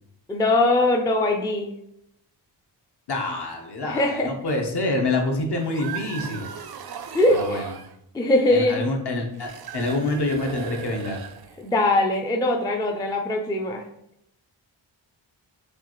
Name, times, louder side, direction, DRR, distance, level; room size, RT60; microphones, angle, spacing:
voice 1, 0.3-1.7 3.8-4.3 7.1-7.7 8.1-8.8 11.6-13.8, left 2 dB, 10° left, 2 dB, 0.3 m, -21 dB
voice 2, 3.1-6.5 7.4-7.7 8.5-11.2, left 2 dB, 55° left, 2 dB, 1.0 m, -26 dB
sound 1, 5.5-7.9 9.3-11.8, right 8 dB, 55° right, 0.5 m, -37 dB
6.6 x 2.4 x 3.0 m, 0.79 s
wide cardioid pair, 125°, 47 cm